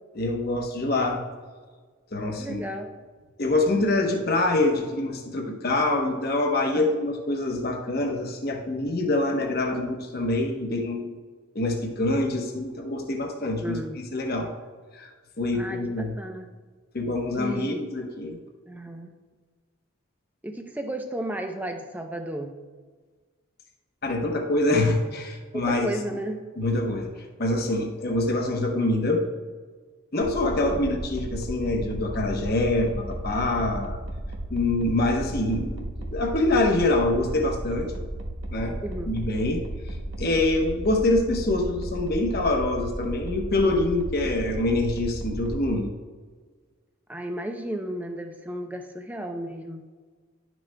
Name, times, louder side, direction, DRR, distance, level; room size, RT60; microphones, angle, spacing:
voice 1, 0.1-1.2 2.1-2.6 3.4-11.2 11.5-13.8 14.1-14.5 14.9-15.1 15.4-16.1 16.9-18.4 24.0-25.9 26.6-29.2 30.1-34.0 34.5-37.9 38.5-38.8 39.1-39.6 40.2-45.9, left 2 dB, 45° left, 2 dB, 0.9 m, -25 dB
voice 2, 2.4-2.9 6.7-6.9 13.6-14.0 15.5-16.5 17.3-17.9 18.7-19.1 20.4-22.5 25.5-26.4 30.7-31.0 38.8-39.2 47.1-49.8, right 1 dB, 10° right, 4 dB, 0.6 m, -33 dB
sound 1, 30.2-45.7, right 1 dB, 75° right, 0.9 m, -34 dB
11.0 x 6.2 x 2.2 m, 1.4 s
head